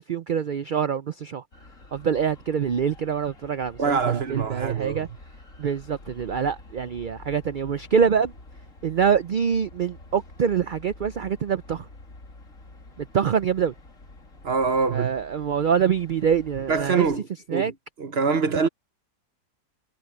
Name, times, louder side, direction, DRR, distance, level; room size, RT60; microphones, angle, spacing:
voice 1, 0.0-1.4 1.9-5.1 5.6-8.3 8.8-11.9 13.0-13.7 14.9-17.1 17.5-17.7, right 7 dB, 90° right, 0.4 m, -25 dB
sound 1, 1.5-17.2, left 2 dB, 60° left, 3.3 m, -48 dB
voice 2, 3.8-5.1 14.4-15.1 16.7-17.7 18.0-18.7, right 5 dB, 50° right, 1.1 m, -24 dB
omnidirectional pair, 1.6 m